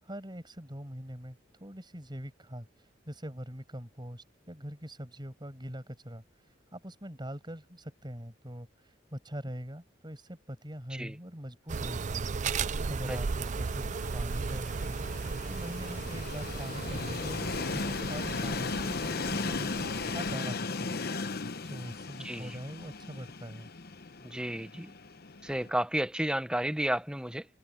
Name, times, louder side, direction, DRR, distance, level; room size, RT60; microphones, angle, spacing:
voice 1, 0.0-6.2 6.7-12.3 12.6-15.0 15.5-17.4 17.7-18.8 19.1-21.0 21.6-23.7, equal, 25° right, 7.8 m, -43 dB
sound 1, 11.7-20.4, right 5 dB, 40° right, 0.4 m, -36 dB
Train, 12.7-25.7, left 4 dB, 55° left, 0.9 m, -37 dB
voice 2, 22.2-22.6 24.2-24.9 25.4-27.5, right 1 dB, 5° right, 0.9 m, -32 dB
head